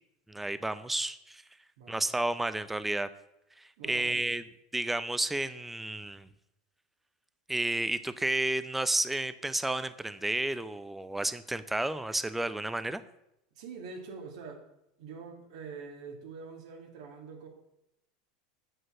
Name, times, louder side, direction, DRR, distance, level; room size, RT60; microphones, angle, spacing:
voice 1, 0.3-1.4 1.9-3.1 3.6-4.4 4.7-6.3 7.5-13.0, right 2 dB, 5° right, 14 dB, 0.5 m, -31 dB
voice 2, 3.8-4.2 13.6-14.6 15.0-17.5, right 5 dB, 75° right, 3 dB, 2.1 m, -45 dB
7.9 x 6.1 x 7.6 m, 0.84 s
supercardioid pair, 140°, 3 cm